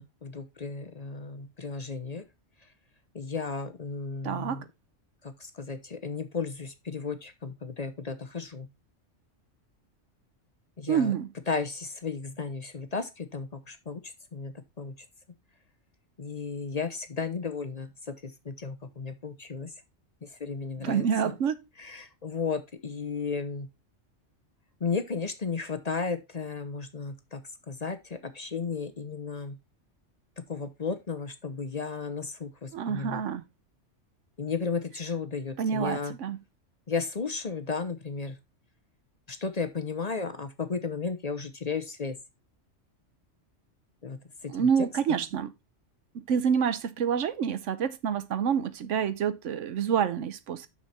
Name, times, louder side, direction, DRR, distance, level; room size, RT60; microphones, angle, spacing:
voice 1, 0.0-2.2 2.6-2.7 3.1-4.7 5.2-8.7 10.8-11.1 11.5-15.1 16.2-19.7 20.2-21.3 21.8-23.7 24.8-29.6 30.4-33.2 34.4-36.2 36.9-38.4 39.3-42.2 44.0-44.7 45.1-45.2, left 5 dB, 40° left, 0.8 m, -34 dB
voice 2, 4.2-4.6 10.9-11.3 20.8-21.6 32.7-33.4 35.6-36.4 44.5-45.5 46.1-50.7, right 7 dB, 85° right, 1.1 m, -27 dB
6.6 x 6.5 x 4.1 m
omnidirectional pair, 1.2 m